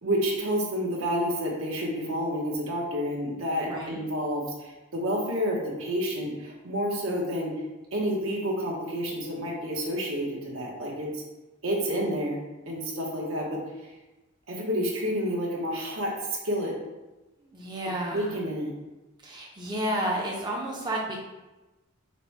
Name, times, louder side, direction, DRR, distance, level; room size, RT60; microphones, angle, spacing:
voice 1, 0.0-7.5 7.9-11.2 11.6-13.6 14.5-16.1 16.4-16.7 18.1-18.7, equal, 80° right, -2 dB, 1.0 m, -29 dB
voice 2, 3.7-4.0 17.4-18.4 19.2-21.2, right 1 dB, 20° right, -3 dB, 0.5 m, -31 dB
4.1 x 2.1 x 4.5 m, 1.1 s
head